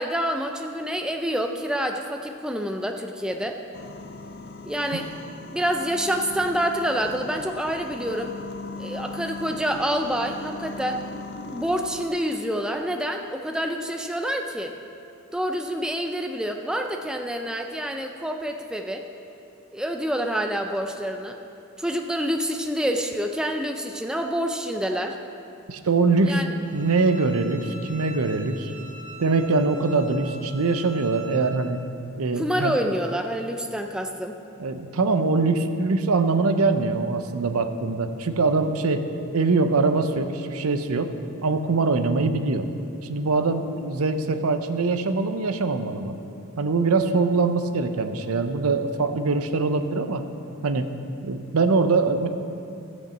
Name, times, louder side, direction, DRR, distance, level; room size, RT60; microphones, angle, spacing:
voice 1, 0.0-3.6 4.7-5.1 5.5-8.3 8.8-11.0 11.5-14.7 15.3-19.0 19.7-21.4 21.8-25.2 26.2-26.5 32.3-34.4, equal, 5° right, 4 dB, 0.4 m, -27 dB
sound 1, 3.7-12.1, left 3 dB, 50° left, 0.6 m, -38 dB
voice 2, 25.7-26.4 26.7-28.7 29.2-31.8 32.2-32.8 34.6-39.0 39.3-41.1 41.4-42.7 43.0-46.2 46.6-50.2 50.6-50.9 51.2-52.3, right 3 dB, 80° right, 9 dB, 0.7 m, -23 dB
Bowed string instrument, 26.6-31.5, right 2 dB, 20° left, 2.3 m, -44 dB
15.0 x 5.3 x 7.3 m, 2.7 s
head